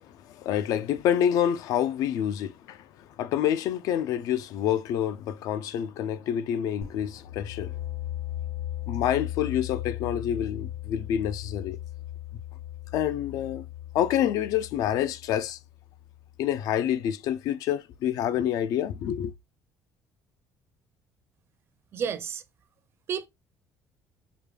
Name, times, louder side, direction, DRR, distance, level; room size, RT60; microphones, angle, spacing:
voice 1, 0.0-2.9 3.2-7.8 8.9-11.8 12.9-13.7 13.9-15.6 16.4-19.3, left 10 dB, 65° left, 0.4 m, -27 dB
sound 1, 6.8-16.4, left 13 dB, 90° left, 2.9 m, -37 dB
voice 2, 21.9-22.4 23.1-23.3, right 7 dB, 40° right, 0.5 m, -30 dB
5.0 x 2.2 x 3.3 m
cardioid pair, 145°, 6 cm